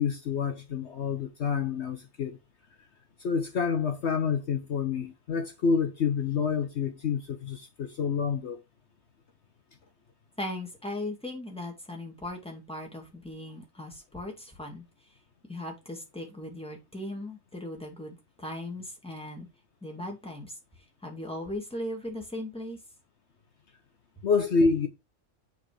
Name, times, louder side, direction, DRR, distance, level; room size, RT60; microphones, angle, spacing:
voice 1, 0.0-2.4 3.2-8.6 24.2-24.9, left 5 dB, 60° left, 1.1 m, -28 dB
voice 2, 10.4-14.8 15.5-19.5 19.8-20.6 21.0-22.8, left 1 dB, 5° left, 2.3 m, -38 dB
8.9 x 4.1 x 4.7 m
omnidirectional pair, 1.4 m